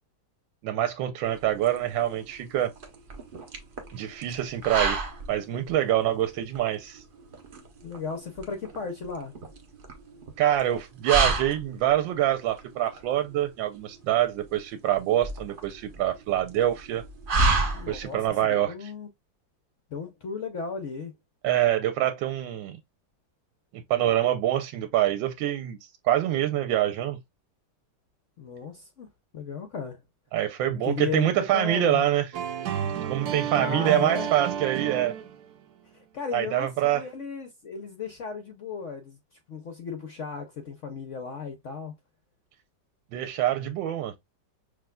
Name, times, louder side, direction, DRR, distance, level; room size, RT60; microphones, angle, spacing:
voice 1, 0.6-2.7 3.9-5.0 5.3-7.0 10.4-17.0 17.9-18.7 21.4-22.8 23.7-25.8 26.0-27.2 30.3-32.3 33.0-35.1 36.3-37.0 43.1-44.1, right 12 dB, 90° right, 1.3 m, -25 dB
sound 1, 1.2-18.3, right 3 dB, 50° right, 0.6 m, -31 dB
voice 2, 7.8-9.3 17.7-19.1 19.9-21.1 28.4-29.1 29.3-30.0 30.7-32.0 33.6-34.3 35.9-42.0, left 5 dB, 65° left, 0.8 m, -35 dB
sound 2, 32.3-35.6, right 9 dB, 65° right, 1.1 m, -31 dB
6.0 x 2.6 x 2.2 m
omnidirectional pair, 2.0 m